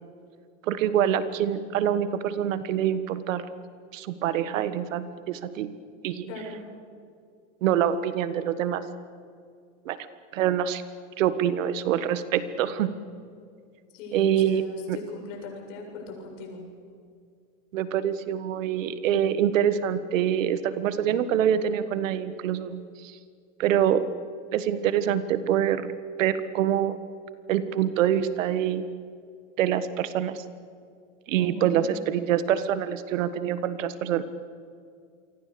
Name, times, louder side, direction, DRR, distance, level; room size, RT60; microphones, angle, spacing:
voice 1, 0.7-3.5 3.9-5.7 6.0-6.3 7.6-8.8 9.8-10.0 10.3-10.8 11.2-12.9 14.1-15.0 17.7-22.9 23.6-24.1 24.5-25.9 26.2-27.0 27.5-28.8 29.6-30.4 31.3-34.2, right 10 dB, 85° right, 13 dB, 1.6 m, -25 dB
voice 2, 6.3-6.6 13.9-16.7 31.4-31.8, left 3 dB, 70° left, 1 dB, 7.8 m, -39 dB
28.0 x 24.0 x 6.9 m, 2.3 s
supercardioid pair, 125°, 38 cm